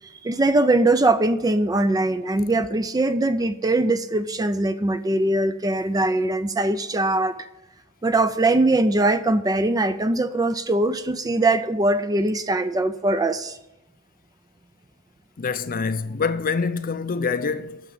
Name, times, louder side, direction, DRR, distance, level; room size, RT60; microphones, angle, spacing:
voice 1, 0.2-7.5 8.0-13.6, right 2 dB, 15° right, 0.4 m, -21 dB
voice 2, 15.4-17.8, left 5 dB, 40° left, 0.6 m, -25 dB
9.2 x 6.8 x 8.3 m
head